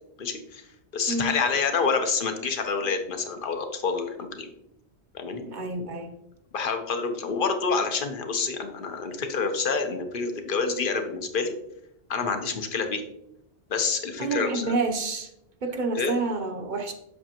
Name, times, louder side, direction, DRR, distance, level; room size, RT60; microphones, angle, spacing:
voice 1, 0.2-0.6 0.9-4.5 5.1-5.4 6.5-11.5 12.1-13.0 13.7-14.7 15.9-16.1, left 5 dB, 50° left, 6 dB, 1.0 m, -27 dB
voice 2, 5.4-6.1 14.2-15.3 15.6-16.9, right 3 dB, 45° right, 5 dB, 0.9 m, -28 dB
7.9 x 6.4 x 2.9 m, 0.80 s
omnidirectional pair, 1.1 m